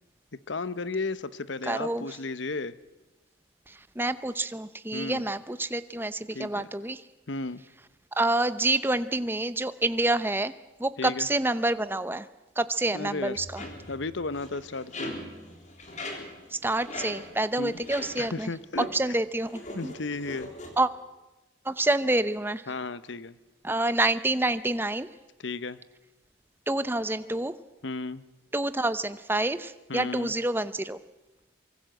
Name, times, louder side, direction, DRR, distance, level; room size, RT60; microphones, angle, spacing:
voice 1, 0.5-2.7 4.9-5.2 6.3-6.7 7.3-7.6 11.0-11.3 12.9-13.4 13.9-15.1 17.6-17.7 18.2-18.9 19.7-20.5 22.7-23.4 25.4-25.8 27.8-28.2 29.9-30.3, left 3 dB, 70° left, 15 dB, 0.9 m, -34 dB
voice 2, 1.6-2.1 3.7-7.0 8.1-10.5 10.8-12.3 12.6-13.6 16.5-18.5 18.8-19.9 20.8-20.9 21.6-22.6 23.6-25.1 26.7-27.6 28.5-31.0, right 2 dB, 10° right, 13 dB, 0.8 m, -27 dB
sound 1, 13.3-18.5 18.7-19.1 19.4-20.7, left 1 dB, 35° left, 3.8 m, -40 dB
25.0 x 23.5 x 7.8 m, 1.1 s
head